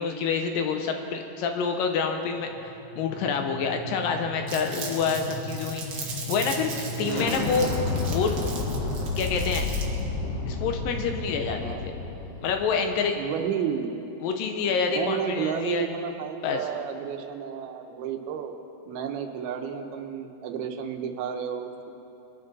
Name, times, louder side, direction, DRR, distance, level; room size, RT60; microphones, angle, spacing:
voice 1, 0.0-2.5 3.0-7.7 8.1-8.4 9.2-9.7 10.5-11.7 12.4-13.2 14.2-15.9 16.4-16.6, left 5 dB, 75° left, 5 dB, 2.3 m, -27 dB
sound 1, 2.5-12.6, left 3 dB, 55° left, 1.9 m, -32 dB
Crumpling crinkling, 4.5-10.0, right 4 dB, 55° right, 1.3 m, -38 dB
voice 2, 7.0-7.4 11.5-11.8 13.2-14.1 15.0-18.6 18.9-21.9, right 8 dB, 85° right, 6 dB, 2.8 m, -32 dB
23.0 x 9.3 x 4.0 m, 2.9 s
omnidirectional pair, 4.3 m